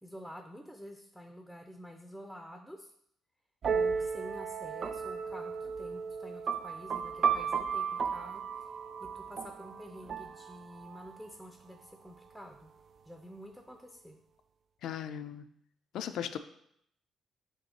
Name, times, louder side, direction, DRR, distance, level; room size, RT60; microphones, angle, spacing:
voice 1, 0.0-2.9 3.7-8.7 9.0-12.7 13.1-14.2, equal, ahead, 4 dB, 0.6 m, -49 dB
sound 1, 3.6-11.2, right 6 dB, 50° right, 0.4 m, -34 dB
voice 2, 14.8-15.4 15.9-16.4, left 9 dB, 80° left, 10 dB, 0.4 m, -37 dB
7.0 x 3.1 x 4.3 m, 0.72 s
cardioid pair, 90°, 0 cm